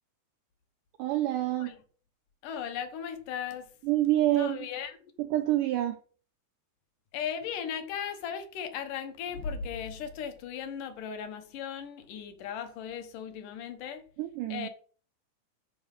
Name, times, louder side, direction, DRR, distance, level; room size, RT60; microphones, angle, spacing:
voice 1, 1.0-1.7 3.9-4.6 5.2-6.0 14.2-14.7, right 14 dB, 90° right, 1.8 m, -27 dB
voice 2, 2.4-3.7 4.4-5.0 7.1-14.1 14.5-14.7, left 8 dB, 65° left, 2.3 m, -37 dB
11.5 x 4.7 x 7.6 m
omnidirectional pair, 4.8 m